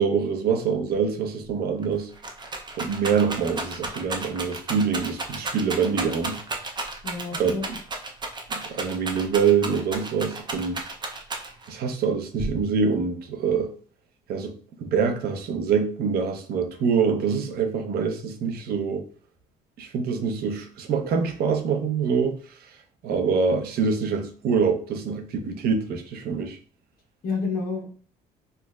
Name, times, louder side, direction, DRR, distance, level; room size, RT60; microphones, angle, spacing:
voice 1, 0.0-2.1 2.8-6.4 7.3-7.5 8.5-10.9 11.7-13.7 14.3-19.0 19.8-22.4 23.0-26.6, right 6 dB, 65° right, 0.7 m, -25 dB
Rattle, 1.4-1.5 1.8-11.8 12.4-13.0, right 3 dB, 25° right, 0.6 m, -33 dB
voice 2, 7.0-7.6 27.2-27.9, left 4 dB, 55° left, 1.1 m, -29 dB
4.5 x 2.1 x 2.3 m
cardioid pair, 110°, 17 cm